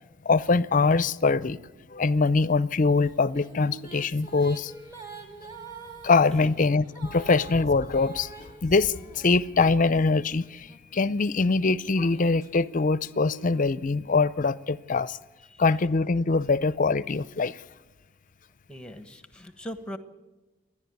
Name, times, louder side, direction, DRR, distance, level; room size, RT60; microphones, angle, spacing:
voice 1, 0.2-1.6 1.9-4.7 6.0-8.3 8.6-15.2 15.6-17.6, left 4 dB, 45° left, 0.6 m, -23 dB
sound 1, 3.0-10.0 10.6-14.4, right 4 dB, 20° right, 2.6 m, -47 dB
voice 2, 18.7-20.0, equal, 5° left, 1.2 m, -40 dB
28.0 x 11.0 x 9.5 m
head